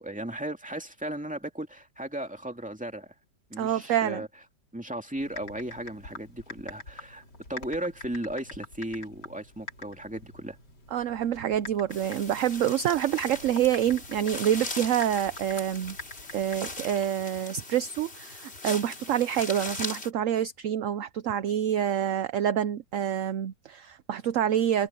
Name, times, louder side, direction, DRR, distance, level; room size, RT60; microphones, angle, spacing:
voice 1, 0.0-3.1 3.5-4.3 4.7-7.2 7.5-10.6, right 1 dB, 5° right, 2.3 m, -36 dB
voice 2, 3.6-4.2 10.9-16.0 16.3-24.9, right 10 dB, 65° right, 0.9 m, -27 dB
Typing, 5.2-17.1, left 2 dB, 70° left, 5.2 m, -46 dB
sound 1, 11.9-20.1, left 2 dB, 35° left, 3.2 m, -40 dB
open air
omnidirectional pair, 1.8 m